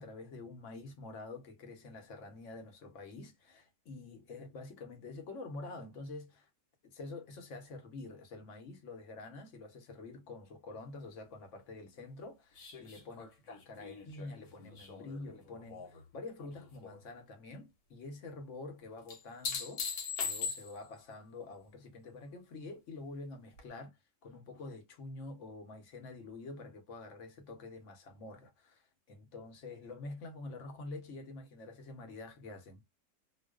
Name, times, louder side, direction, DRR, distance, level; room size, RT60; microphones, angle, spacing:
voice 1, 0.0-6.5 6.8-32.8, left 3 dB, 60° left, 1.0 m, -47 dB
sound 1, 12.6-16.0 16.4-17.0 19.1-21.0 23.6-23.7, left 6 dB, 80° left, 1.2 m, -41 dB
2.4 x 2.3 x 2.2 m
omnidirectional pair, 1.6 m